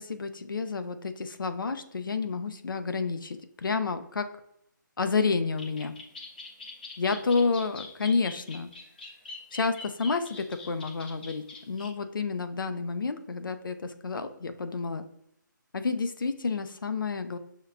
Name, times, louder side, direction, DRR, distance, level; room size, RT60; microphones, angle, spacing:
voice 1, 0.0-4.3 5.0-5.9 7.0-8.7 9.5-15.1 15.7-17.4, left 4 dB, 80° left, 10 dB, 0.5 m, -30 dB
sound 1, 5.6-11.9, left 3 dB, 25° left, 0.6 m, -44 dB
6.3 x 2.2 x 2.4 m, 0.75 s
hypercardioid pair, 170°, 11 cm